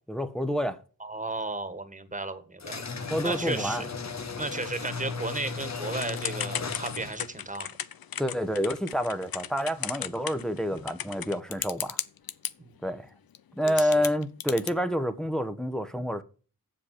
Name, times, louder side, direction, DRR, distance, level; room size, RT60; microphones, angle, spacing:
voice 1, 0.1-0.8 3.1-3.8 8.2-12.0 12.8-13.1 13.6-16.2, equal, ahead, 1.0 m, -28 dB
voice 2, 1.0-3.9 4.4-7.7 12.6-12.7 13.6-14.0, right 2 dB, 20° right, 1.7 m, -34 dB
sound 1, 2.6-7.3, left 4 dB, 50° left, 1.1 m, -36 dB
Typing / Telephone, 6.0-12.5 13.3-13.4 13.7-14.7, left 10 dB, 85° left, 0.6 m, -35 dB
7.7 x 7.0 x 6.5 m
cardioid pair, 45°, 35 cm